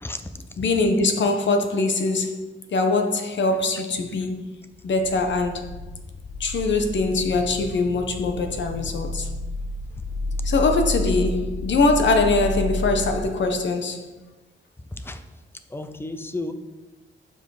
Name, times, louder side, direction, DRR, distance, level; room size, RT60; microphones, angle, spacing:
voice 1, 0.0-0.7 14.8-15.2 15.7-16.5, left 2 dB, 10° left, 0.5 m, -33 dB
voice 2, 0.6-4.5 4.8-5.8 6.4-9.3 10.4-14.1, left 3 dB, 65° left, 0.9 m, -22 dB
sound 1, 4.8-13.2, left 1 dB, 30° left, 0.8 m, -30 dB
7.1 x 5.8 x 4.8 m
wide cardioid pair, 165°, 20 cm